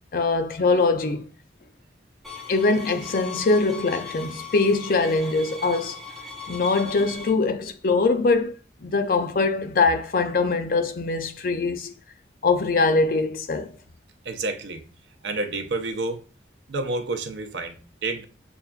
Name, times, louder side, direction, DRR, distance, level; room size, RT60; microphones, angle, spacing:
voice 1, 0.1-1.2 2.5-6.0 6.5-8.5 8.8-11.9 12.4-13.7, left 3 dB, 50° left, 0.4 m, -22 dB
sound 1, 2.2-7.3, left 4 dB, ahead, 0.7 m, -39 dB
voice 2, 14.2-14.8 15.2-16.2 16.7-18.2, right 2 dB, 90° right, 0.6 m, -29 dB
6.8 x 2.4 x 2.2 m
head